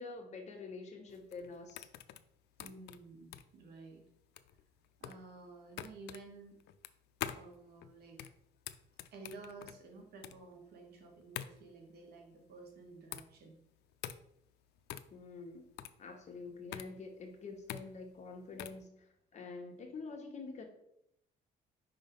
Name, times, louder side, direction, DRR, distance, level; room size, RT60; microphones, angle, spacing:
voice 1, 0.0-1.9 15.1-15.7 16.0-20.6, left 3 dB, 45° left, 2 dB, 1.3 m, -47 dB
sound 1, 1.1-18.9, left 12 dB, 75° left, 0.4 m, -47 dB
voice 2, 2.6-4.0 5.0-6.6 7.3-8.2 9.1-13.6, right 3 dB, 70° right, 2 dB, 1.5 m, -52 dB
5.3 x 3.6 x 5.2 m, 0.75 s
cardioid pair, 110°, 17 cm